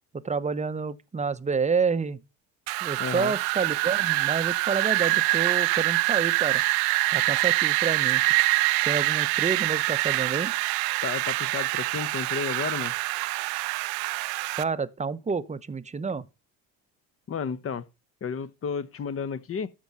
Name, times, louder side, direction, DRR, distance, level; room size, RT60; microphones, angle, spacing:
voice 1, 0.2-2.2 2.8-6.6 7.1-8.2 8.9-10.5 14.6-16.3, right 5 dB, 15° right, 0.8 m, -29 dB
Wind, 2.7-14.6, right 22 dB, 75° right, 0.7 m, -25 dB
voice 2, 3.0-3.3 11.0-12.9 17.3-17.8 18.2-19.7, left 6 dB, 35° left, 1.0 m, -32 dB
13.0 x 4.6 x 5.4 m
hypercardioid pair, 75°, 41 cm